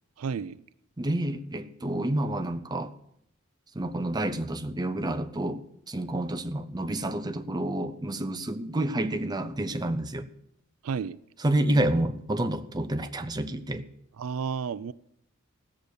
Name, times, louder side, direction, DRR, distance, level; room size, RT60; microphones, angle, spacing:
voice 1, 0.2-0.6 10.8-11.2 14.2-14.9, right 6 dB, 90° right, 0.4 m, -31 dB
voice 2, 1.0-2.9 3.7-10.3 11.4-13.9, right 1 dB, 20° right, 0.7 m, -29 dB
16.0 x 6.5 x 6.8 m
head